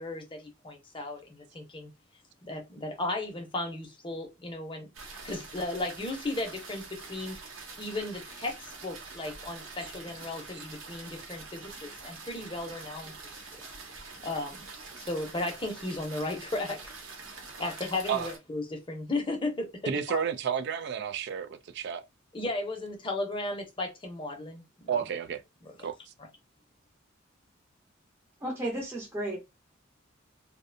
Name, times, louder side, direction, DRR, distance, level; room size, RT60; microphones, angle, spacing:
voice 1, 0.0-1.9 2.4-4.9 5.2-7.4 7.8-13.1 14.2-14.7 15.0-16.9 17.6-20.2 22.3-24.6 26.2-26.3, left 2 dB, 25° left, 0.7 m, -35 dB
sound 1, 4.9-18.4, right 4 dB, 80° right, 0.8 m, -45 dB
voice 2, 19.9-22.0 24.9-25.4 25.8-26.1, right 7 dB, 55° right, 0.3 m, -31 dB
voice 3, 28.4-29.4, right 1 dB, 10° right, 0.6 m, -33 dB
2.5 x 2.1 x 2.6 m
head